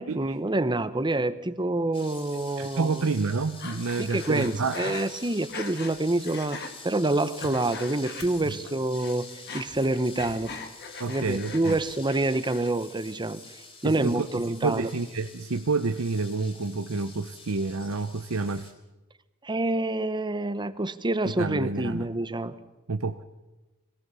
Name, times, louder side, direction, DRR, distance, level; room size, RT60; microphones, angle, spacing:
voice 1, 0.0-3.1 4.0-9.3 9.5-10.6 11.1-13.4 13.8-14.9 19.4-22.6, right 2 dB, 20° right, 13 dB, 0.9 m, -27 dB
sound 1, 1.9-18.7, left 4 dB, 25° left, 3.7 m, -47 dB
voice 2, 2.6-5.0 11.0-11.8 13.8-14.3 14.6-18.7 21.4-22.1 22.9-23.2, right 3 dB, 70° right, 8 dB, 0.8 m, -29 dB
Breathing, 3.6-6.0 6.3-6.7 7.2-8.7 9.0-11.8 12.1-12.7, left 4 dB, 50° left, 2.4 m, -40 dB
23.0 x 18.0 x 7.0 m, 1.1 s
head